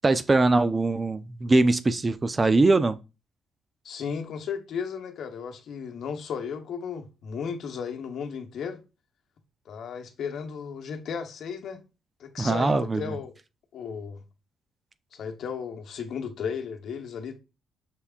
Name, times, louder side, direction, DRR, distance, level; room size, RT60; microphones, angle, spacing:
voice 1, 0.0-3.0 12.4-13.0, right 3 dB, 25° right, 0.4 m, -22 dB
voice 2, 3.8-8.8 9.7-11.8 12.2-13.3 13.7-14.2 15.1-17.4, left 6 dB, 70° left, 0.9 m, -35 dB
5.9 x 3.4 x 2.4 m
cardioid pair, 90°, 0 cm